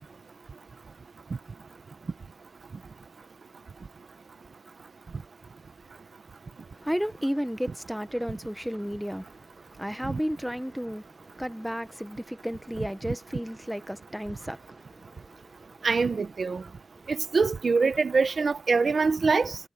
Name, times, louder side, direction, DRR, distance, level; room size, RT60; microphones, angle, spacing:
voice 1, 6.8-9.4 9.8-15.0 15.4-15.5, equal, ahead, 0.9 m, -33 dB
voice 2, 15.8-16.6 17.1-19.6, right 4 dB, 45° right, 0.8 m, -24 dB
wide cardioid pair, 180°, 0 cm